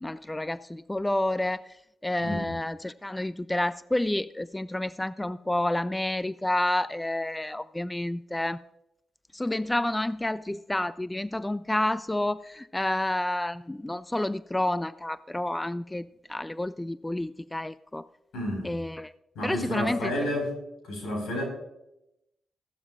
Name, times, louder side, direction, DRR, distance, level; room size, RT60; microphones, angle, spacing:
voice 1, 0.0-8.6 9.3-18.1 18.6-19.1 19.4-20.1, left 1 dB, 15° left, 16 dB, 0.3 m, -29 dB
voice 2, 2.2-2.5 18.3-18.8 19.3-20.5 20.8-21.4, left 1 dB, 85° left, 1 dB, 4.6 m, -31 dB
15.0 x 12.0 x 2.4 m, 0.85 s
supercardioid pair, 55°, 0 cm